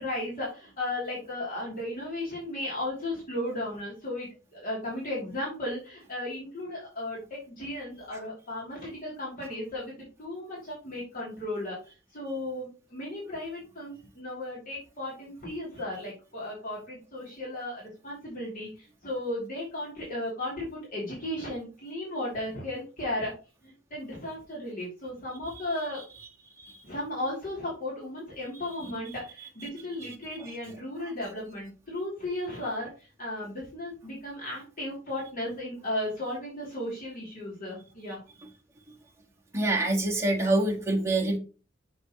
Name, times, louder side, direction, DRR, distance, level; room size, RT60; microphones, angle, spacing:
voice 1, 0.0-9.9 10.2-11.8 12.1-23.3 23.6-26.0 26.8-38.2, left 1 dB, 45° left, -5 dB, 2.9 m, -35 dB
voice 2, 39.5-41.4, right 2 dB, 15° right, -2 dB, 1.6 m, -25 dB
6.4 x 6.1 x 3.0 m, 0.34 s
head